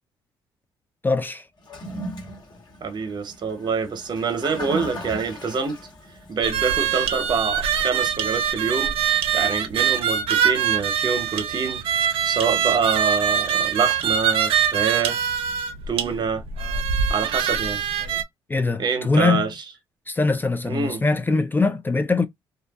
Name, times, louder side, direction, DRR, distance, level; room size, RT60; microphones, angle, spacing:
voice 1, 1.0-1.4 18.5-19.5 20.1-22.3, left 3 dB, 20° left, 0.3 m, -22 dB
Toilet flush, 1.6-10.9, equal, 50° left, 1.2 m, -39 dB
voice 2, 2.8-5.8 6.3-8.9 9.3-11.8 12.2-15.3 15.9-16.4 17.1-17.8 18.8-19.5 20.6-21.0, right 5 dB, 50° right, 0.8 m, -26 dB
sound 1, 6.4-18.2, right 8 dB, 75° right, 0.5 m, -23 dB
2.5 x 2.3 x 2.3 m
cardioid pair, 70°, 10 cm